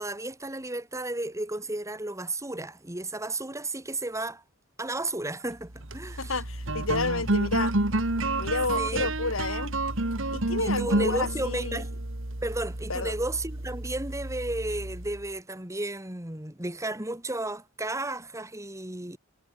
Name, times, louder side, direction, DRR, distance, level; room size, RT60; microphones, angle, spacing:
voice 1, 0.0-4.4 4.8-6.4 8.8-9.1 10.6-12.0 12.4-19.2, right 2 dB, 15° right, 2.9 m, -33 dB
sound 1, 5.7-15.3, right 2 dB, 70° right, 2.4 m, -30 dB
voice 2, 6.2-7.7 8.4-9.7 10.3-11.8 12.9-13.1, left 3 dB, 85° left, 3.2 m, -30 dB
head